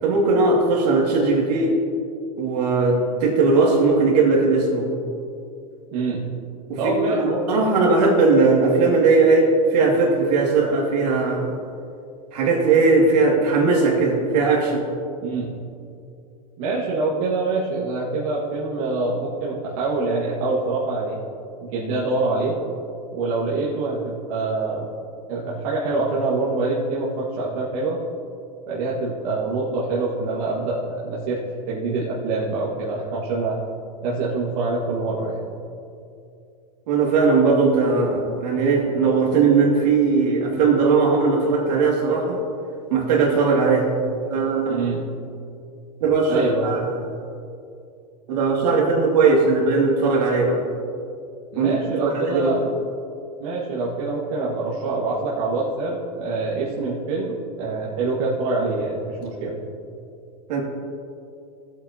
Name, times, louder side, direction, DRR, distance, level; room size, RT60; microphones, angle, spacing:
voice 1, 0.0-1.8 2.4-4.9 6.7-11.5 12.3-14.8 36.9-42.4 42.9-43.9 44.3-44.9 46.0-47.0 48.3-50.6 51.6-52.6 60.5-60.6, right 4 dB, 75° right, -2 dB, 2.5 m, -19 dB
voice 2, 5.9-6.2 6.8-7.7 15.2-15.5 16.6-21.2 21.6-22.5 23.1-24.9 25.3-28.0 28.7-33.5 34.0-35.5 44.7-45.1 46.3-46.7 51.5-52.7 53.4-59.6, right 3 dB, 55° right, -7 dB, 1.8 m, -25 dB
16.0 x 8.3 x 2.9 m, 2.5 s
supercardioid pair, 150°, 21 cm